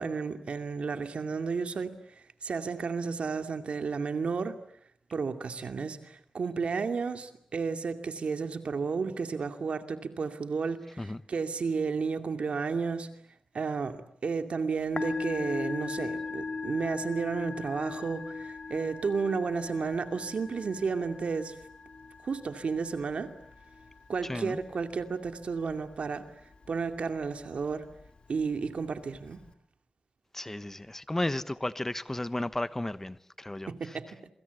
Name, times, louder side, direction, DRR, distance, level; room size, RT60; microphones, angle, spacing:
voice 1, 0.0-4.6 5.1-13.1 13.5-21.6 22.2-23.3 24.1-26.2 26.7-27.9 28.3-29.4 33.7-34.1, right 5 dB, 75° right, 2.4 m, -32 dB
Musical instrument, 14.8-29.5, left 4 dB, 55° left, 2.3 m, -40 dB
voice 2, 24.2-24.6 30.3-34.0, left 1 dB, 20° left, 1.0 m, -34 dB
27.5 x 24.5 x 8.3 m
wide cardioid pair, 75°, 2 cm